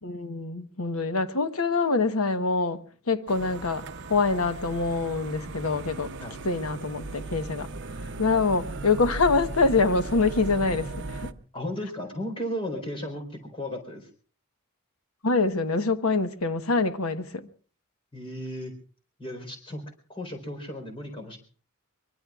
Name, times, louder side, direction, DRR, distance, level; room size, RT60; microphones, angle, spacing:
voice 1, 0.0-6.1 6.4-7.7 8.2-11.3 15.2-17.4, left 3 dB, 85° left, 1.2 m, -25 dB
sound 1, 3.3-11.3, right 2 dB, 55° right, 0.8 m, -37 dB
voice 2, 11.5-14.1 18.1-18.7 19.2-19.8 20.1-21.4, equal, 25° left, 4.3 m, -35 dB
24.0 x 23.5 x 2.4 m
head